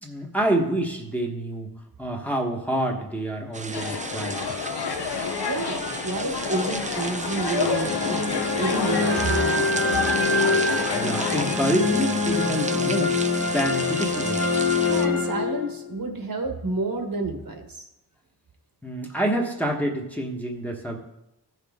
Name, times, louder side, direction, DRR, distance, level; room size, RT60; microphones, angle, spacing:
voice 1, 0.0-1.7 2.0-4.4 10.9-13.2 13.5-14.4 18.8-21.0, right 1 dB, 5° left, -1 dB, 1.1 m, -27 dB
sound 1, 3.5-15.1, right 4 dB, 20° right, 0.4 m, -34 dB
sound 2, 3.7-11.6, left 6 dB, 70° left, 0.8 m, -30 dB
voice 2, 5.4-9.9 14.8-17.9, right 3 dB, 55° right, 3 dB, 1.2 m, -30 dB
sound 3, 7.6-15.9, left 3 dB, 35° left, 1.4 m, -25 dB
15.0 x 5.9 x 3.6 m, 0.88 s
wide cardioid pair, 165°, 41 cm